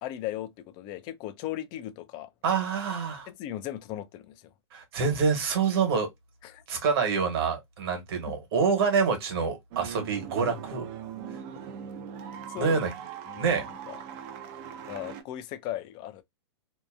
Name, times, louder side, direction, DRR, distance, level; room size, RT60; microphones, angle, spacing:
voice 1, 0.0-2.3 3.3-4.5 6.4-6.6 8.3-8.4 12.5-12.8 13.3-14.0 14.8-16.2, left 13 dB, 35° left, 0.4 m, -37 dB
voice 2, 2.4-3.3 4.7-6.1 6.7-10.9 12.6-12.9 13.4-13.6, right 5 dB, 60° right, 1.3 m, -26 dB
sound 1, 9.7-15.2, right 8 dB, 40° right, 0.5 m, -40 dB
2.7 x 2.2 x 2.4 m
hypercardioid pair, 135°, 14 cm